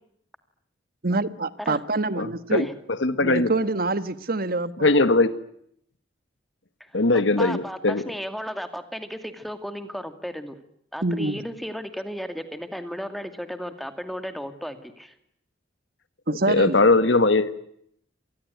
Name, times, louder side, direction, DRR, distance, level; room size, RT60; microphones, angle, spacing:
voice 1, 1.0-2.6 3.2-4.9 11.0-11.4 16.3-16.8, right 2 dB, 50° right, 1.4 m, -26 dB
voice 2, 2.1-2.7 3.0-3.5 4.8-5.3 6.9-8.0 16.5-17.6, left 2 dB, 80° left, 1.5 m, -20 dB
voice 3, 6.9-10.6 10.9-15.1, equal, ahead, 2.4 m, -34 dB
27.5 x 20.0 x 9.4 m
head